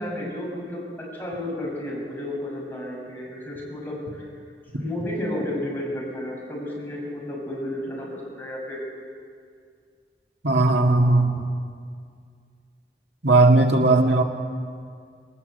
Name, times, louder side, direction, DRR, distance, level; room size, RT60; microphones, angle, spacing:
voice 1, 0.0-4.3 4.7-8.8, left 1 dB, 10° left, -4 dB, 6.4 m, -32 dB
voice 2, 10.4-11.3 13.2-14.2, right 2 dB, 80° right, 3 dB, 2.0 m, -17 dB
20.0 x 19.5 x 8.0 m, 2.1 s
head